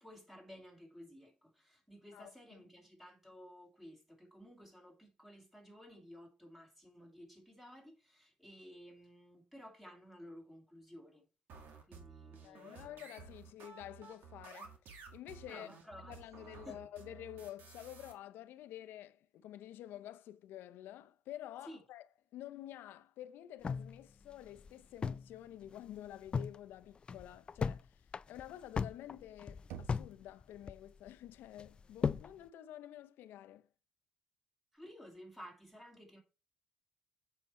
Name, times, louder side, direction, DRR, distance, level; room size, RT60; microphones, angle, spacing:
voice 1, 0.0-11.2 11.8-13.0 15.5-16.2 16.7-16.8 21.7-21.8 34.7-36.2, equal, 5° right, 2.5 m, -54 dB
voice 2, 2.1-2.6 12.4-15.7 16.0-22.1 22.3-28.0 28.3-33.7, left 12 dB, 75° left, 0.6 m, -50 dB
sound 1, 11.5-18.1, right 5 dB, 65° right, 2.0 m, -54 dB
sound 2, 23.6-25.3 25.6-25.7 26.1-26.6 27.0-27.8 28.1-30.1 30.4-31.1 31.6-32.3, left 5 dB, 30° left, 0.3 m, -37 dB
Knock, 29.7-30.6, right 7 dB, 85° right, 1.1 m, -50 dB
7.4 x 5.5 x 4.2 m
cardioid pair, 125°, 4 cm